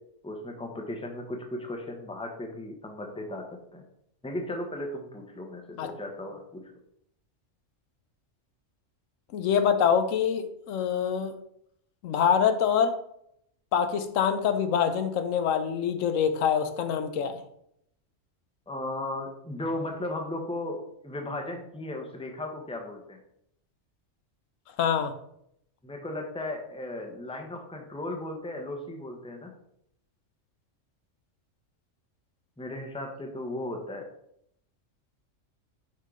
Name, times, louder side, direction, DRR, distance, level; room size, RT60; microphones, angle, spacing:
voice 1, 0.2-3.8 4.2-6.7 18.7-23.2 25.8-29.5 32.6-34.1, left 1 dB, 5° left, 2 dB, 0.8 m, -36 dB
voice 2, 9.3-11.3 12.0-13.0 13.7-17.4 24.8-25.1, left 7 dB, 90° left, 9 dB, 1.1 m, -25 dB
6.5 x 5.6 x 3.7 m, 0.74 s
omnidirectional pair, 1.3 m